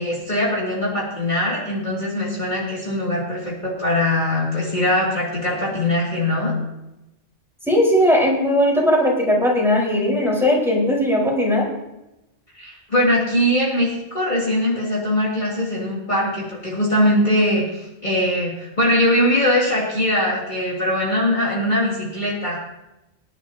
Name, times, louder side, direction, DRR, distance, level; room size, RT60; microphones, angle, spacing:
voice 1, 0.0-6.5 12.5-22.6, left 1 dB, 40° left, -6 dB, 2.9 m, -21 dB
voice 2, 7.7-11.7, left 1 dB, ahead, -5 dB, 4.5 m, -18 dB
26.0 x 11.0 x 2.8 m, 0.95 s
omnidirectional pair, 1.2 m